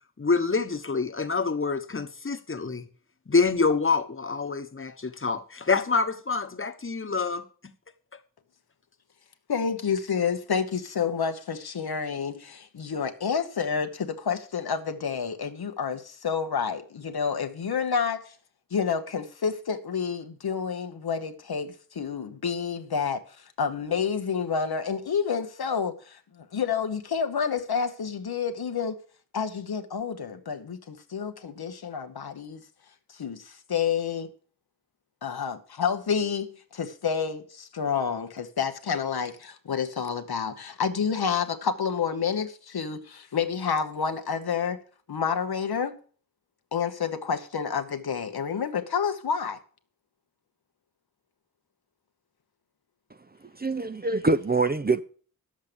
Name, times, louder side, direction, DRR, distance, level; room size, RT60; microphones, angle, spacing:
voice 1, 0.2-2.9 3.3-7.4, left 4 dB, 35° left, 1.2 m, -26 dB
voice 2, 9.5-18.3 18.7-29.0 29.3-32.6 33.2-34.3 35.2-44.8 45.1-46.0 46.7-49.6, left 6 dB, 85° left, 1.1 m, -29 dB
voice 3, 53.6-55.0, right 3 dB, 25° right, 0.6 m, -24 dB
10.5 x 7.4 x 6.7 m
wide cardioid pair, 70°, 37 cm